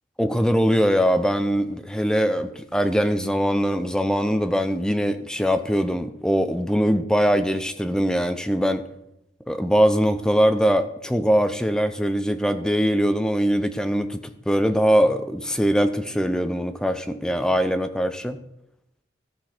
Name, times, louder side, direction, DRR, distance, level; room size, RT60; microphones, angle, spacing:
voice 1, 0.2-8.8 9.5-14.2 14.5-18.4, equal, 5° left, 9 dB, 0.5 m, -22 dB
14.0 x 6.0 x 4.3 m, 0.81 s
head